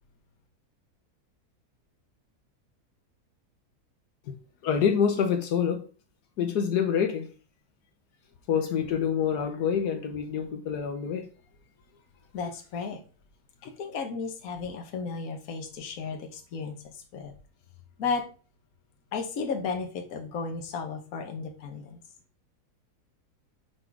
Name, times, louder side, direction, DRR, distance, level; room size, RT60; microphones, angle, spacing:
voice 1, 4.6-5.8 6.4-7.3 8.5-11.2, left 7 dB, 80° left, 1.5 m, -26 dB
voice 2, 12.3-13.0 13.6-17.3 18.0-18.3 19.1-22.0, left 5 dB, 65° left, 1.4 m, -34 dB
6.1 x 3.9 x 4.6 m
omnidirectional pair, 1.7 m